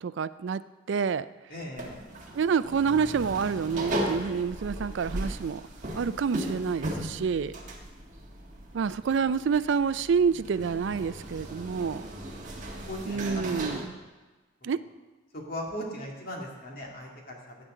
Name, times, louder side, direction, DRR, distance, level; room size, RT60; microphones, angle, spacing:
voice 1, 0.0-0.6 0.9-1.3 2.4-5.6 5.9-7.5 8.7-12.1 13.1-13.8 14.6-14.8, right 6 dB, 60° right, 15 dB, 0.4 m, -28 dB
voice 2, 1.5-2.0 12.9-13.9 15.3-17.6, equal, 45° left, -1 dB, 2.3 m, -38 dB
sound 1, 1.8-13.9, right 1 dB, 40° right, 1.5 m, -37 dB
16.0 x 9.1 x 3.8 m, 1.3 s
head